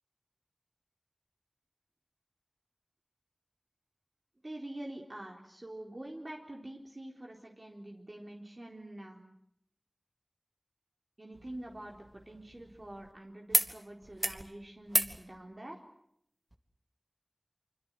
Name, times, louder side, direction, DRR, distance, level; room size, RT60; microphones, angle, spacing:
voice 1, 4.4-9.2 11.2-15.8, right 1 dB, 50° right, 0 dB, 4.1 m, -46 dB
sound 1, 11.3-13.1 13.5-13.7 14.0-14.4 14.9-15.2 16.5-16.6, right 1 dB, 35° right, 2.4 m, -33 dB
26.0 x 25.5 x 7.9 m, 0.71 s
wide cardioid pair, 50°, 0 cm